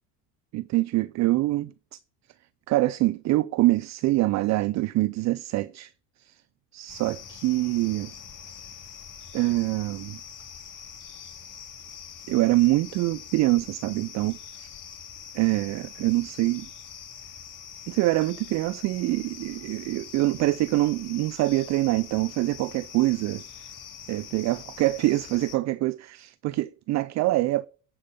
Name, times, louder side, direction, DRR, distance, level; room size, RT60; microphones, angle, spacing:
voice 1, 0.5-2.0 2.7-5.9 6.2-6.4 6.7-8.1 9.3-10.2 12.3-14.7 15.3-16.7 17.9-23.7 24.1-27.7, right 18 dB, 40° right, 0.4 m, -25 dB
sound 1, 6.9-25.6, left 8 dB, 40° left, 2.4 m, -44 dB
9.8 x 5.2 x 5.2 m
hypercardioid pair, 70°, 48 cm